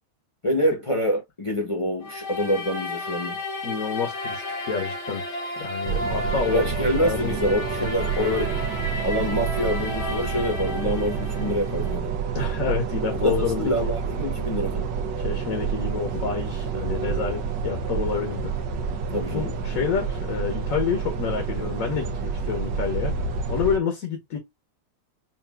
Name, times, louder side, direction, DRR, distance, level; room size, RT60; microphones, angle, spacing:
voice 1, 0.4-3.4 6.5-8.6 9.0-12.1 13.2-14.9 19.1-19.5, equal, 25° left, 0.9 m, -26 dB
sound 1, 2.0-12.0, left 1 dB, 70° left, 2.0 m, -33 dB
voice 2, 3.6-5.3 5.6-7.4 12.3-13.9 15.2-18.5 19.3-23.1 23.5-24.4, left 6 dB, 55° left, 1.4 m, -28 dB
sound 2, 5.8-23.8, right 6 dB, 85° right, 1.4 m, -29 dB
5.8 x 2.6 x 2.3 m
omnidirectional pair, 1.8 m